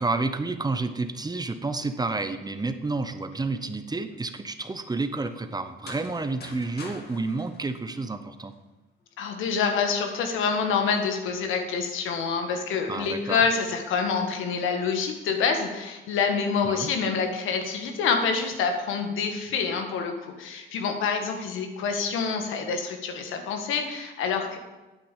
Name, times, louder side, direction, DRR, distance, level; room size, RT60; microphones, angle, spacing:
voice 1, 0.0-8.5 12.9-13.4 16.6-16.9, right 3 dB, 20° right, 9 dB, 0.9 m, -30 dB
sound 1, 5.7-8.6, left 3 dB, 55° left, 2.3 m, -45 dB
voice 2, 9.2-24.6, left 5 dB, 90° left, 5 dB, 1.8 m, -27 dB
9.2 x 8.5 x 7.5 m, 1.1 s
cardioid pair, 90°, 20 cm